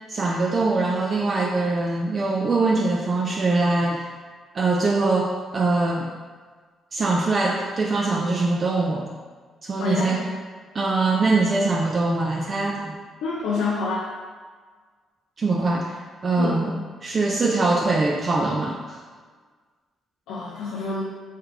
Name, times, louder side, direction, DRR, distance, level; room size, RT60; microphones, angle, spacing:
voice 1, 0.1-4.0 4.5-6.1 6.9-9.1 9.6-10.2 10.7-13.0 15.4-15.9 16.2-16.7 17.0-19.0, right 3 dB, 45° right, -1 dB, 0.3 m, -22 dB
voice 2, 9.8-10.4 13.2-14.1 16.4-16.6 20.3-21.0, left 3 dB, 80° left, -4 dB, 0.4 m, -27 dB
3.2 x 2.4 x 3.1 m, 1.5 s
supercardioid pair, 55°, 0 cm